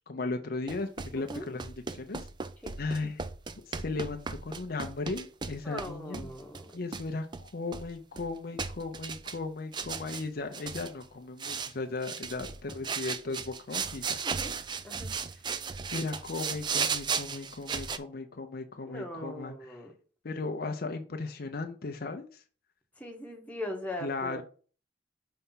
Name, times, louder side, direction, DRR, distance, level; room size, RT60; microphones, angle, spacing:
voice 1, 0.1-2.3 2.8-3.3 3.7-6.3 6.7-14.2 15.9-19.8 20.2-22.3 24.0-24.4, left 3 dB, 55° left, 0.6 m, -36 dB
sound 1, 0.7-5.9 6.1-7.1 7.3-8.3 8.6-9.4 9.7-10.3 10.5-11.0 11.4-11.7 12.0-18.0, right 5 dB, 25° right, 0.4 m, -36 dB
voice 2, 1.1-1.5 2.6-2.7 5.6-6.8 14.2-14.6 14.8-15.1 18.8-19.9 23.0-24.4, left 1 dB, 10° left, 1.2 m, -40 dB
5.6 x 3.4 x 5.6 m
head